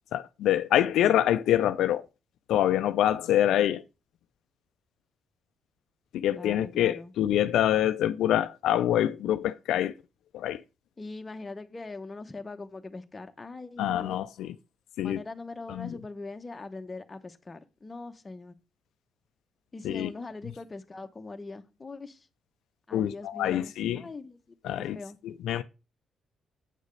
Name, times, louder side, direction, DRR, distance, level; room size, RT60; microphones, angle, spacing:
voice 1, 0.1-2.0 2.5-3.8 6.1-9.9 10.3-10.6 13.8-14.5 15.0-15.2 15.7-15.9 19.8-20.1 22.9-24.0 24.6-25.0 25.2-25.6, left 12 dB, 80° left, 0.3 m, -25 dB
voice 2, 6.3-7.1 11.0-14.3 15.0-18.6 19.7-22.3 22.9-25.2, left 3 dB, 25° left, 0.8 m, -42 dB
8.2 x 6.4 x 3.2 m
cardioid pair, 90°, 0 cm